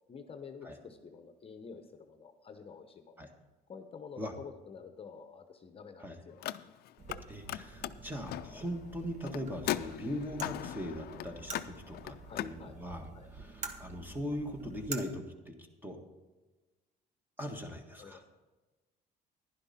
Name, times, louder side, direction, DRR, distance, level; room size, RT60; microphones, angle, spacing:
voice 1, 0.1-3.3 3.7-6.5 12.2-12.8 13.1-13.3 18.0-18.3, left 5 dB, 35° left, 7 dB, 0.9 m, -49 dB
Car, 6.3-7.2 7.4-12.5, left 14 dB, 65° left, 0.5 m, -39 dB
sound 1, 7.0-15.0, right 4 dB, 45° right, 1.2 m, -48 dB
voice 2, 7.3-13.0 13.3-15.5 15.8-16.0 17.4-18.2, equal, 10° right, 4 dB, 1.6 m, -40 dB
11.0 x 11.0 x 4.2 m, 1.2 s
cardioid pair, 110°, 17 cm